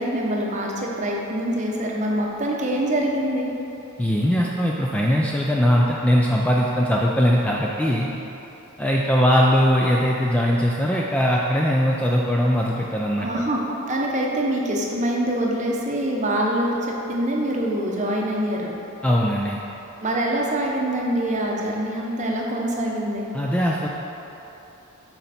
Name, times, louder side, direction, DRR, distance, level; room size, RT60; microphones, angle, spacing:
voice 1, 0.0-3.5 13.2-13.6 13.9-18.7 20.0-23.3, right 1 dB, 35° right, -1 dB, 0.8 m, -24 dB
voice 2, 4.0-8.1 8.8-13.3 19.0-19.6 23.3-23.9, equal, 5° left, -3 dB, 0.3 m, -20 dB
7.7 x 4.3 x 4.2 m, 3.0 s
head